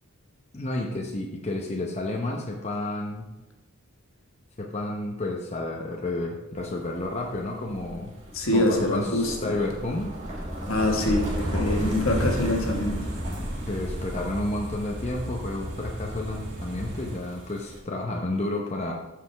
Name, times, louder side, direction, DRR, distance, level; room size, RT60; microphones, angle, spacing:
voice 1, 0.5-3.3 4.6-8.1 8.5-10.1 13.7-18.9, left 2 dB, 30° left, -1 dB, 0.8 m, -31 dB
sound 1, 6.5-17.8, equal, 35° right, 2.1 m, -34 dB
voice 2, 8.3-9.5 10.7-13.0, left 1 dB, 65° left, 1 dB, 1.5 m, -25 dB
sound 2, 10.7-17.2, right 1 dB, 60° right, 1.4 m, -37 dB
13.5 x 5.1 x 3.4 m, 0.99 s
head